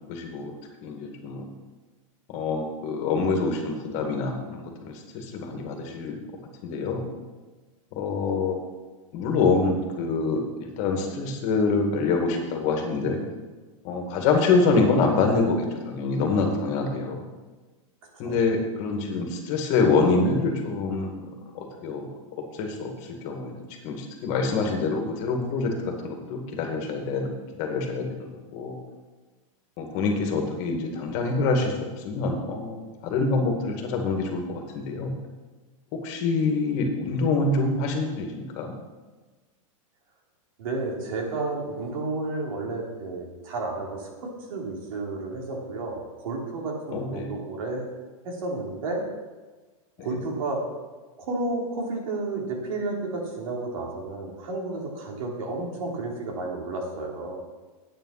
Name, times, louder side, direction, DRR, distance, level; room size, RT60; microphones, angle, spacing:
voice 1, 0.1-0.5 0.8-1.4 2.3-6.2 6.6-7.0 7.9-8.6 9.1-13.2 13.8-17.2 18.2-22.1 22.6-22.9 23.2-23.5 23.8-27.3 27.6-28.0 28.5-28.8 29.8-35.1 35.9-38.7 46.9-47.3, left 4 dB, 40° left, 2 dB, 2.1 m, -26 dB
voice 2, 40.6-47.9 48.2-49.1 50.0-50.7 51.2-57.4, right 2 dB, 75° right, -1 dB, 3.3 m, -31 dB
9.2 x 8.9 x 5.9 m, 1.3 s
supercardioid pair, 150°, 18 cm